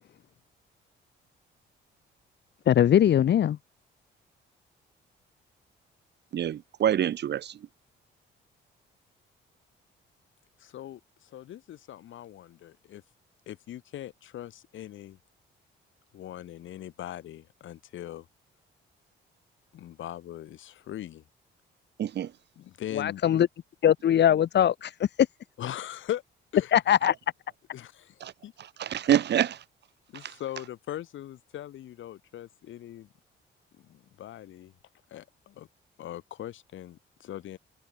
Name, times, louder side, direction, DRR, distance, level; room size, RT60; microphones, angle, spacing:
voice 1, 2.7-3.6 22.9-23.5 23.8-25.1 26.7-27.1, left 10 dB, 60° left, 1.4 m, -21 dB
voice 2, 6.3-7.5 22.0-22.3 28.2-28.3 28.8-29.6, right 10 dB, 60° right, 1.1 m, -26 dB
voice 3, 10.6-13.0 13.5-15.2 16.1-18.3 19.7-21.2 22.6-23.2 25.6-26.2 26.5-26.7 27.7-28.5 30.1-33.1 33.8-34.7 35.1-35.7 36.0-37.6, left 12 dB, 75° left, 6.5 m, -40 dB
cardioid pair, 90°, 20 cm